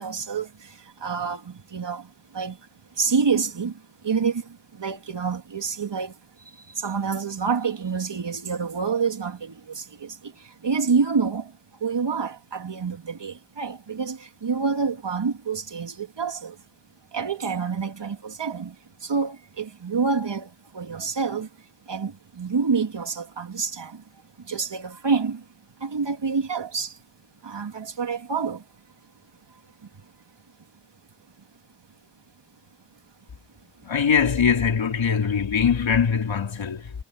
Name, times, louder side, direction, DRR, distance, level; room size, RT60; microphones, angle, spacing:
voice 1, 0.0-2.1 2.3-2.6 3.0-3.8 4.0-6.1 6.8-11.5 11.8-16.6 17.1-18.7 19.0-21.5 21.9-24.0 24.5-25.4 25.8-27.0 27.4-28.6, right 5 dB, 70° right, 3.6 m, -27 dB
voice 2, 33.8-36.9, left 6 dB, 85° left, 4.3 m, -22 dB
cardioid pair, 45°, 44 cm